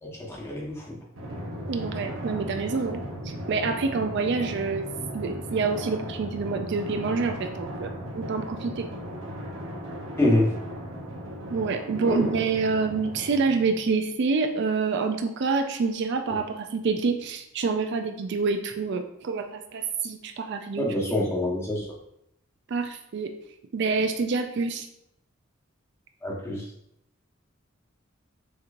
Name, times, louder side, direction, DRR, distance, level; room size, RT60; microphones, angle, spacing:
voice 1, 0.0-1.0 10.2-10.5 11.9-12.4 20.8-21.9 26.2-26.7, left 1 dB, 15° left, -4 dB, 1.1 m, -26 dB
Drum, 1.1-14.2, equal, 85° right, 0.9 m, -37 dB
voice 2, 1.7-3.0 3.2-4.9 5.1-8.9 11.5-20.9 22.7-23.3 23.7-24.9, right 4 dB, 60° right, 6 dB, 0.4 m, -27 dB
6.5 x 2.9 x 2.5 m, 0.79 s
head